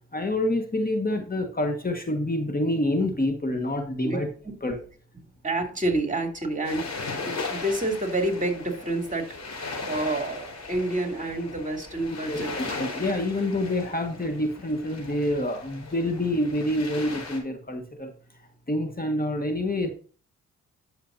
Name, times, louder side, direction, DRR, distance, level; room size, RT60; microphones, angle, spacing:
voice 1, 0.1-4.3 4.6-4.8 12.3-18.1 18.7-19.9, left 1 dB, 25° left, 5 dB, 1.5 m, -27 dB
voice 2, 5.4-12.9, right 1 dB, 25° right, 3 dB, 2.8 m, -29 dB
sound 1, 6.6-17.4, left 3 dB, 55° left, 4.2 m, -37 dB
10.5 x 6.6 x 2.6 m, 0.41 s
supercardioid pair, 50°, 32 cm